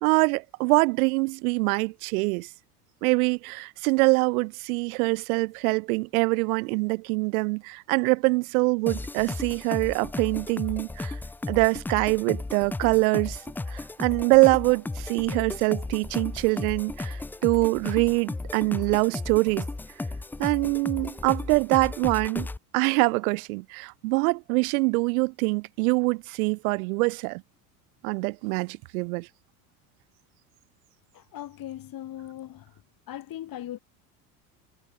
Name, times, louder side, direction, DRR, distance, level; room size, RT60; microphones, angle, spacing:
voice 1, 0.0-2.5 3.0-11.2 11.5-13.4 13.7-19.7 20.4-22.5 22.7-27.4 28.0-29.3, right 27 dB, 65° right, 1.2 m, -24 dB
sound 1, 8.9-22.6, left 2 dB, 5° left, 0.3 m, -34 dB
voice 2, 31.1-32.7 33.1-33.8, left 12 dB, 45° left, 6.2 m, -39 dB
hypercardioid pair, 75°, 46 cm